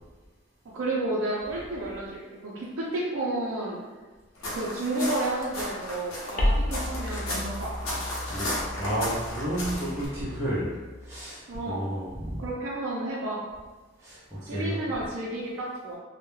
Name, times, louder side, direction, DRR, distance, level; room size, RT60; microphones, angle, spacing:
voice 1, 0.7-3.8 4.5-7.7 11.5-11.8 12.4-13.4 14.4-16.0, right 2 dB, 70° right, -5 dB, 0.4 m, -31 dB
sound 1, 4.4-10.1, left 1 dB, 80° left, 0.7 m, -34 dB
sound 2, 6.4-11.2, left 1 dB, 40° left, 0.4 m, -32 dB
voice 2, 8.8-10.7 11.0-12.4 14.0-14.9, right 1 dB, 15° right, -9 dB, 0.5 m, -31 dB
2.2 x 2.0 x 3.0 m, 1.3 s
head